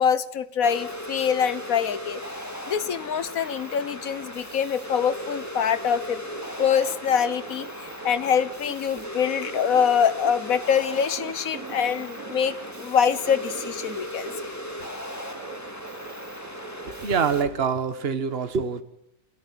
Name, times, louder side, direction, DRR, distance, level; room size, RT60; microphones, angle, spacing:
voice 1, 0.0-2.2 2.7-6.2 6.6-14.5, left 7 dB, 90° left, 15 dB, 1.5 m, -24 dB
sound 1, 0.6-17.4, equal, 10° left, 2.5 m, -37 dB
sound 2, 4.1-17.4, right 6 dB, 85° right, 1.6 m, -43 dB
voice 2, 16.8-18.8, right 6 dB, 50° right, 11 dB, 1.5 m, -25 dB
28.5 x 13.5 x 7.5 m, 0.84 s
omnidirectional pair, 1.4 m